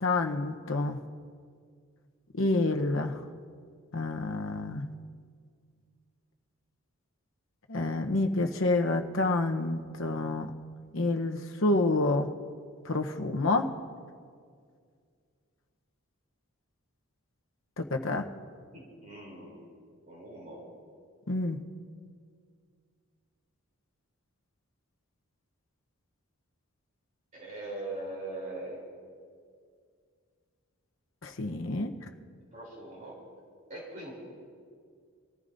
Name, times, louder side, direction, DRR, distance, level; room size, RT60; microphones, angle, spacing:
voice 1, 0.0-1.0 2.4-3.2 3.9-4.9 7.7-10.5 10.9-12.3 12.8-13.7 17.8-18.3 21.3-21.6 31.2-31.9, left 2 dB, 60° left, 4 dB, 0.9 m, -28 dB
voice 2, 18.7-19.6 20.1-20.7 27.3-28.8 32.5-33.2 33.7-34.1, right 2 dB, 35° right, -4 dB, 3.4 m, -41 dB
25.5 x 14.5 x 2.7 m, 2.1 s
head